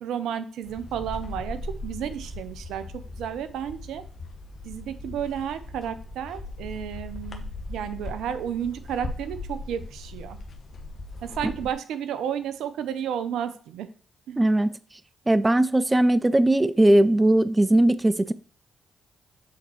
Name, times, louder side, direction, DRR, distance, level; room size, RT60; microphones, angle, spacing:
voice 1, 0.0-4.0 4.6-10.4 11.2-13.9 14.3-14.4, right 9 dB, 75° right, 0.5 m, -32 dB
sound 1, 0.6-11.7, left 2 dB, 55° left, 1.0 m, -38 dB
voice 2, 14.4-14.7 15.3-18.3, right 1 dB, 20° right, 0.4 m, -19 dB
7.8 x 4.0 x 3.1 m
hypercardioid pair, 40°, 0 cm